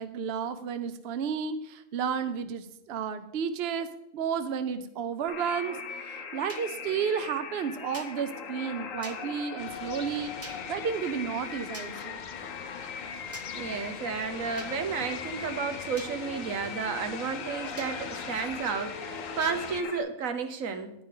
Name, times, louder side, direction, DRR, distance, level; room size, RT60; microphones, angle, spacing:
voice 1, 0.0-12.2, right 7 dB, 60° right, 11 dB, 0.8 m, -32 dB
sound 1, 5.3-20.0, left 6 dB, 80° left, 1.2 m, -40 dB
sound 2, 6.5-6.7 7.9-8.1 9.0-9.2 10.4-10.6 11.7-11.9 13.3-13.5 14.6-14.7 16.0-16.1 17.8-17.9, right 1 dB, 15° right, 0.8 m, -43 dB
sound 3, 9.6-19.8, left 5 dB, 45° left, 0.7 m, -43 dB
voice 2, 13.5-20.9, right 5 dB, 85° right, 8 dB, 1.4 m, -32 dB
10.5 x 10.0 x 3.8 m, 0.84 s
omnidirectional pair, 1.4 m